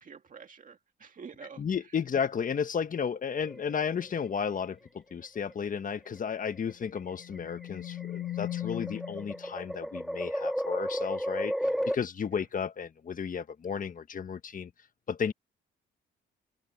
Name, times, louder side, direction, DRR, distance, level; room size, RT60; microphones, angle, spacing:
voice 1, 0.0-1.6 11.6-11.9 12.3-12.4, right 6 dB, 40° right, 2.0 m, -48 dB
voice 2, 1.6-11.5 11.9-14.7 15.1-15.3, left 7 dB, 40° left, 1.5 m, -33 dB
sound 1, 3.4-4.2 5.4-5.8 6.7-12.0, equal, ahead, 3.3 m, -34 dB
sound 2, 7.0-9.5, left 13 dB, 90° left, 0.9 m, -38 dB
cardioid pair, 90°, 20 cm